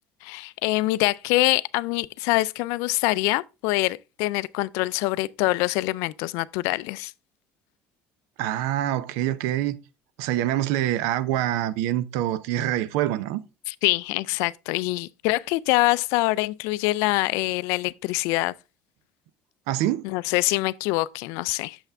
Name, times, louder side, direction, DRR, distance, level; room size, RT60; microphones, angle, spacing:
voice 1, 0.2-7.1 13.7-18.5 20.0-21.8, left 20 dB, 80° left, 0.3 m, -25 dB
voice 2, 8.4-9.8 10.2-13.4 19.7-20.0, right 13 dB, 85° right, 0.6 m, -25 dB
7.0 x 5.7 x 3.4 m
cardioid pair, 115°, 5 cm